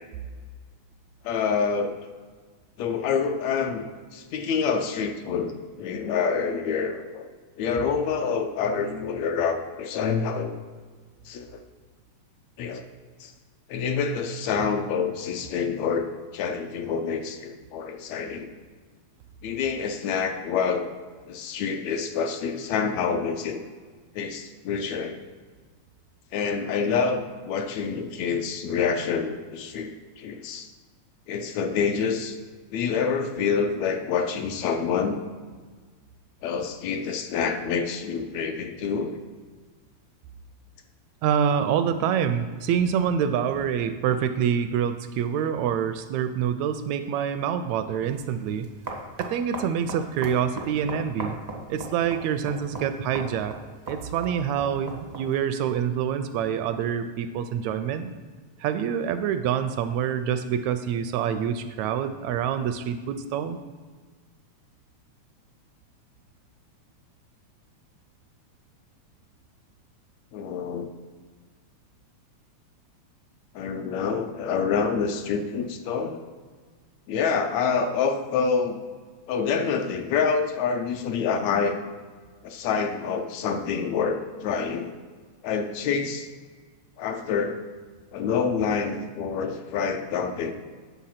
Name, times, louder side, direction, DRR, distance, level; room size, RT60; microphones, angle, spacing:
voice 1, 1.2-2.1 2.8-3.9 4.1-7.3 7.6-10.5 11.3-11.6 12.6-12.9 13.2-13.3 13.7-16.1 16.3-18.5 19.4-20.9 21.3-23.6 24.2-25.2 26.3-29.9 30.2-30.7 31.3-32.4 32.7-35.2 36.4-39.2 70.3-70.9 73.6-76.2 77.1-78.8 79.3-81.8 82.4-84.9 85.4-86.3 87.0-87.6 88.1-90.5, left 6 dB, 75° left, 7 dB, 1.8 m, -27 dB
voice 2, 41.2-48.7 49.2-51.4 51.7-53.5 53.9-58.1 58.6-63.6, right 8 dB, 80° right, 10 dB, 1.7 m, -26 dB
sound 1, 48.1-55.4, right 2 dB, 45° right, 0.5 m, -39 dB
9.3 x 6.9 x 5.7 m, 1.5 s
omnidirectional pair, 3.4 m